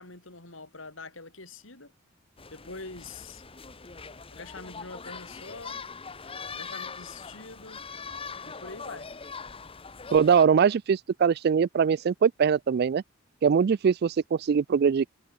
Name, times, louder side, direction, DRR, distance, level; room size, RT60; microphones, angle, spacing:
voice 1, 0.0-1.9 2.5-3.4 4.3-5.8 6.5-7.8 8.4-9.1, left 3 dB, 90° left, 5.0 m, -44 dB
sound 1, 2.4-10.5, left 5 dB, 30° left, 1.2 m, -41 dB
voice 2, 10.1-13.0 13.4-15.1, right 6 dB, 55° right, 0.3 m, -22 dB
head